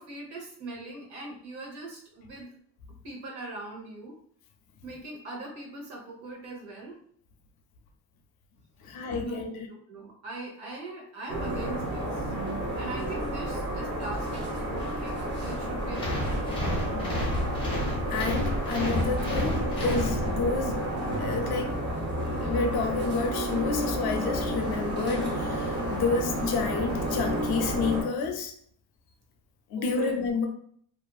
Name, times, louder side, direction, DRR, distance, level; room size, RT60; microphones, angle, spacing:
voice 1, 0.0-2.5 3.0-4.2 4.8-7.0 8.9-12.3 12.8-16.5 29.8-30.1, right 2 dB, 65° right, -1 dB, 1.0 m, -41 dB
voice 2, 8.8-9.7 18.1-20.8 21.2-21.7 22.4-28.5 29.7-30.5, left 4 dB, 60° left, 3 dB, 0.5 m, -29 dB
sound 1, 11.3-28.0, right 1 dB, 25° right, 0.6 m, -31 dB
sound 2, 15.9-20.7, left 1 dB, 10° left, 0.6 m, -31 dB
2.6 x 2.4 x 2.3 m, 0.62 s
cardioid pair, 160°, 42 cm